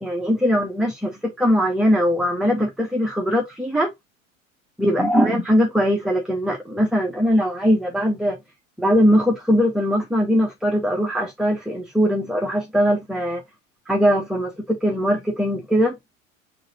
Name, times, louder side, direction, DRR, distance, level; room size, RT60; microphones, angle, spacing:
voice 1, 0.0-3.9 4.8-8.4 8.8-13.4 13.9-16.0, equal, ahead, 0.7 m, -20 dB
3.9 x 3.9 x 2.6 m
hypercardioid pair, 80°, 41 cm